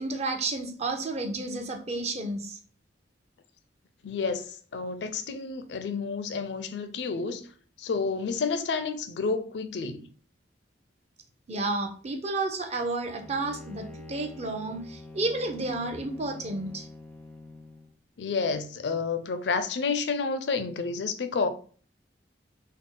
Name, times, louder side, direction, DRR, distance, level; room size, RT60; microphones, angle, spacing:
voice 1, 0.0-2.6 11.5-16.9, right 2 dB, 40° right, 0.6 m, -31 dB
voice 2, 4.0-7.5 7.8-10.1 18.2-21.5, left 4 dB, 70° left, 0.4 m, -30 dB
Bowed string instrument, 13.2-18.0, left 2 dB, 5° left, 0.3 m, -46 dB
3.6 x 2.1 x 3.8 m
head